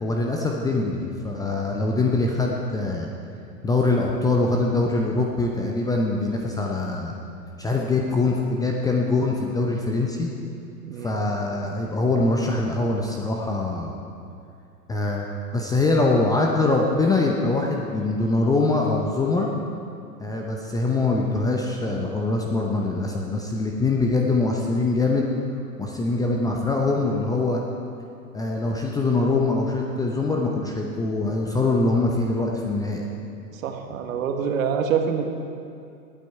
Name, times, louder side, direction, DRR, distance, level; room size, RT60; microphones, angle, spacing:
voice 1, 0.0-3.1 3.6-7.1 7.6-10.3 11.0-14.0 14.9-19.5 20.2-25.3 25.8-27.6 28.3-33.0, left 3 dB, 10° left, 0 dB, 0.6 m, -23 dB
voice 2, 10.8-11.2 33.5-35.3, right 7 dB, 55° right, 4 dB, 1.6 m, -26 dB
19.0 x 9.0 x 4.7 m, 2.5 s
figure-of-eight pair, 110°, 48 cm